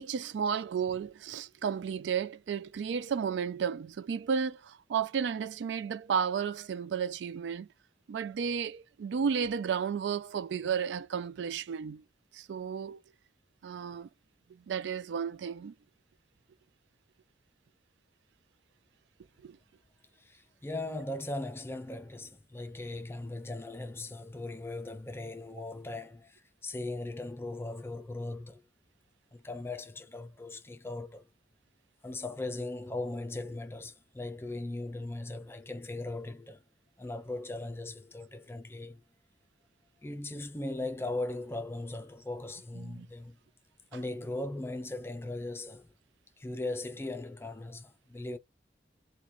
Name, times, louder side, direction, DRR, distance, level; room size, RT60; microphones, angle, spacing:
voice 1, 0.0-7.7 8.1-12.0 12.3-13.0 13.6-14.1 14.7-15.7 19.4-19.6 42.8-43.1, right 7 dB, 85° right, 0.3 m, -33 dB
voice 2, 20.2-28.6 29.3-31.3 32.0-36.6 37.0-39.0 40.0-43.4 43.9-45.9 46.4-48.4, left 2 dB, 15° left, 0.4 m, -38 dB
3.0 x 2.2 x 3.8 m
head